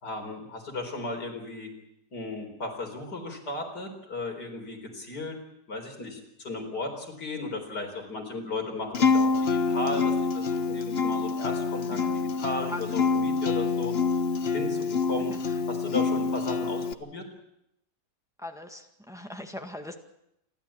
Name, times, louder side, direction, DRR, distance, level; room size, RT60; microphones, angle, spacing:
voice 1, 0.0-1.7 2.1-5.4 5.7-13.9 14.5-15.3 15.7-17.3, left 2 dB, 80° left, 3 dB, 4.7 m, -35 dB
Acoustic guitar, 8.9-16.9, left 4 dB, 45° left, 1.0 m, -26 dB
voice 2, 15.2-15.6 18.4-19.9, left 1 dB, ahead, 5 dB, 1.7 m, -40 dB
28.5 x 12.0 x 8.6 m, 0.81 s
omnidirectional pair, 1.7 m